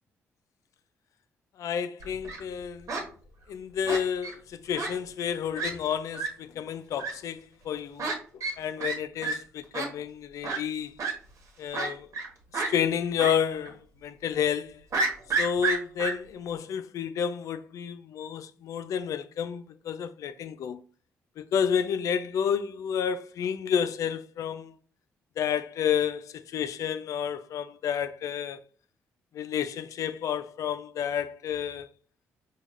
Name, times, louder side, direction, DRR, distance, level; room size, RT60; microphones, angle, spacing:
voice 1, 1.6-2.9 3.5-11.0 11.6-12.1 12.5-14.8 15.4-20.8 21.4-24.7 25.4-28.6 29.3-31.9, left 8 dB, 70° left, 0.4 m, -30 dB
Fowl, 2.0-2.4 2.9-3.0 3.9-4.3 4.7-4.9 5.2-5.3 5.6-5.7 6.1-6.3 7.0-7.1 8.0-8.1 8.4-8.5 8.8-9.0 9.2-9.3 9.7-9.9 10.4-10.6 11.0-11.1 11.7-12.3 12.5-12.7 13.2-13.3 13.7-13.8 14.9-16.1, right 3 dB, 65° right, 1.2 m, -29 dB
4.8 x 2.3 x 3.1 m
supercardioid pair, 55°, 6 cm